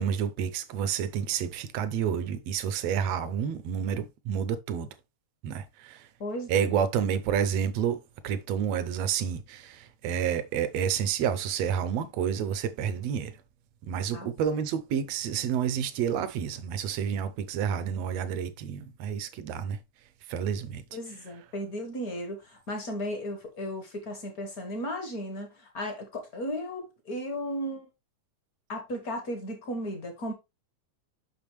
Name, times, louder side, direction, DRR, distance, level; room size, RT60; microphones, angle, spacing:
voice 1, 0.0-4.9 5.4-6.1 6.5-13.4 13.9-19.8 20.3-20.8, right 8 dB, 75° right, 1.7 m, -29 dB
voice 2, 6.2-6.8 14.1-14.3 20.9-27.9 28.7-30.3, equal, 45° left, 1.3 m, -35 dB
6.9 x 6.0 x 3.1 m
omnidirectional pair, 3.3 m